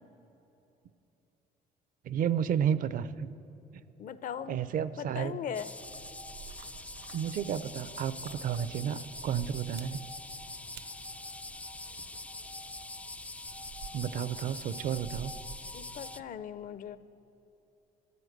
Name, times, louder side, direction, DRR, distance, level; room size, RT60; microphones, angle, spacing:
voice 1, 2.0-3.3 3.7-3.8 4.5-5.4 7.1-10.0 13.9-15.3, right 9 dB, 55° right, 15 dB, 0.5 m, -32 dB
voice 2, 4.0-4.6 5.0-5.7 15.7-17.0, left 8 dB, 50° left, 14 dB, 0.6 m, -39 dB
sound 1, 5.5-16.2, left 2 dB, 10° left, 0.3 m, -44 dB
sound 2, 5.7-16.1, right 7 dB, 80° right, 1.1 m, -51 dB
14.5 x 10.5 x 7.9 m, 3.0 s
cardioid pair, 110°, 17 cm